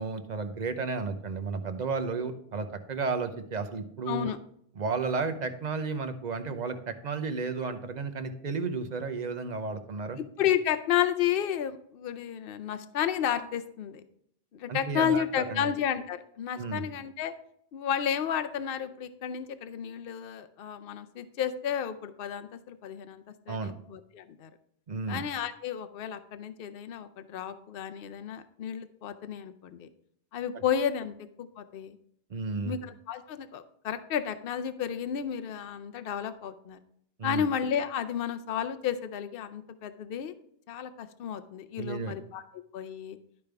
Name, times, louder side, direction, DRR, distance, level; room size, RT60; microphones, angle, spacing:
voice 1, 0.0-4.3 4.8-10.2 14.7-15.7 16.6-16.8 23.5-23.7 24.9-25.2 30.5-30.6 32.3-32.7 37.2-37.4 41.8-42.1, right 4 dB, 45° right, 9 dB, 0.8 m, -33 dB
voice 2, 4.1-4.4 10.2-14.0 14.5-17.3 17.7-24.5 25.1-29.9 30.3-32.0 32.6-36.8 37.2-40.3 40.7-43.2, left 9 dB, 65° left, 10 dB, 0.8 m, -32 dB
12.0 x 5.2 x 3.4 m, 0.68 s
omnidirectional pair, 1.1 m